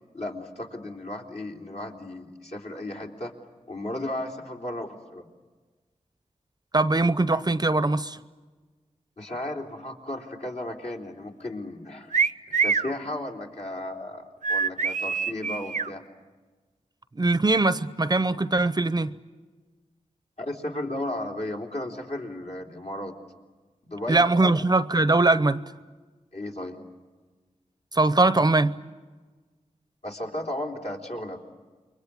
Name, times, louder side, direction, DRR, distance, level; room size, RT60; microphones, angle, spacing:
voice 1, 0.1-3.3 3.7-5.3 9.2-12.2 12.6-16.0 20.4-23.1 23.8-24.5 26.3-26.8 30.0-31.4, left 1 dB, 60° left, 3.8 m, -34 dB
voice 2, 6.7-8.2 17.1-19.1 24.1-25.6 27.9-28.7, right 2 dB, 30° right, 0.8 m, -21 dB
sound 1, 12.1-12.9 14.4-15.9, right 5 dB, 75° right, 0.8 m, -25 dB
29.0 x 23.5 x 8.5 m
wide cardioid pair, 65°, 13 cm